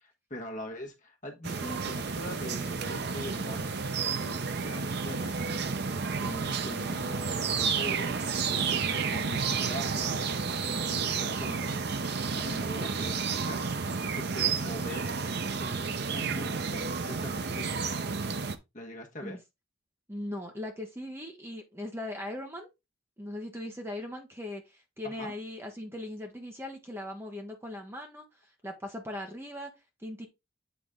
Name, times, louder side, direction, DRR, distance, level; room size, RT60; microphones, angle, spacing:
voice 1, 0.0-3.7 4.2-5.6 6.2-8.1 8.5-10.3 10.6-11.8 12.3-13.6 14.0-15.1 15.6-17.8 18.7-19.4 25.0-25.3, equal, 40° left, 1.3 m, -42 dB
sound 1, 1.4-18.6, right 5 dB, 50° right, 0.6 m, -31 dB
voice 2, 20.1-22.7 23.2-28.2 28.6-29.7 30.0-30.3, left 1 dB, 10° right, 1.1 m, -39 dB
8.1 x 4.0 x 3.6 m
head